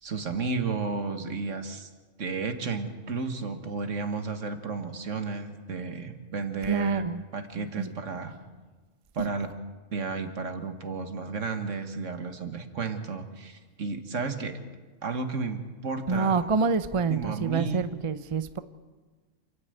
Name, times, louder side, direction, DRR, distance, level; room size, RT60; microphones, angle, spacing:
voice 1, 0.0-1.9 2.2-7.0 7.3-8.3 9.1-9.5 9.9-14.6 15.0-16.5 17.1-17.9, right 4 dB, 75° right, 7 dB, 1.9 m, -33 dB
voice 2, 6.7-7.2 7.6-7.9 9.2-9.3 16.1-18.6, right 5 dB, 35° right, 12 dB, 0.6 m, -27 dB
28.5 x 10.0 x 9.1 m, 1.3 s
omnidirectional pair, 1.3 m